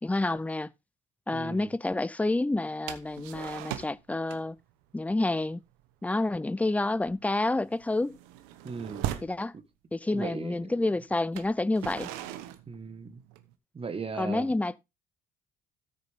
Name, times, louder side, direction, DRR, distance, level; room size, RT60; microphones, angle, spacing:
voice 1, 0.0-0.7 1.3-4.6 4.9-5.6 6.0-8.2 9.2-9.5 9.9-12.1 14.2-14.8, left 2 dB, 10° left, 0.5 m, -29 dB
voice 2, 1.3-1.7 8.6-9.1 9.5-9.6 10.1-10.7 12.7-13.2 13.7-14.5, right 5 dB, 35° right, 1.6 m, -38 dB
sound 1, 2.9-4.0 4.3-4.6 4.9-5.2 5.6-5.8 6.1-6.4 6.7-9.4 10.3-10.4 11.2-13.5, right 13 dB, 85° right, 1.0 m, -39 dB
13.0 x 6.7 x 3.6 m
supercardioid pair, 65°, 16 cm